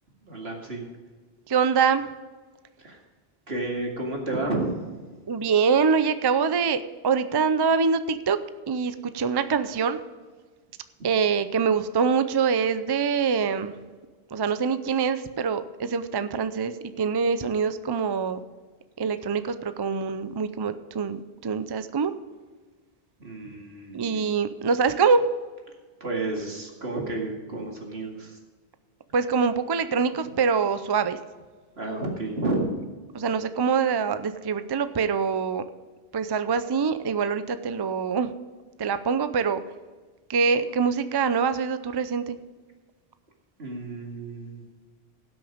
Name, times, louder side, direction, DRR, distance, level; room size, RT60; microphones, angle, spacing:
voice 1, 0.3-0.9 2.8-3.0 3.5-5.1 23.2-24.3 26.0-28.4 31.8-32.7 43.6-44.7, right 2 dB, 85° right, 0 dB, 2.4 m, -31 dB
voice 2, 1.5-2.1 5.3-8.4 8.7-10.0 11.0-13.8 14.3-18.4 19.0-22.1 23.9-25.2 29.1-31.2 33.1-35.6 36.1-38.3 38.8-39.6 40.3-42.4, right 5 dB, 35° right, 11 dB, 0.4 m, -24 dB
17.0 x 6.2 x 5.0 m, 1.4 s
omnidirectional pair, 1.0 m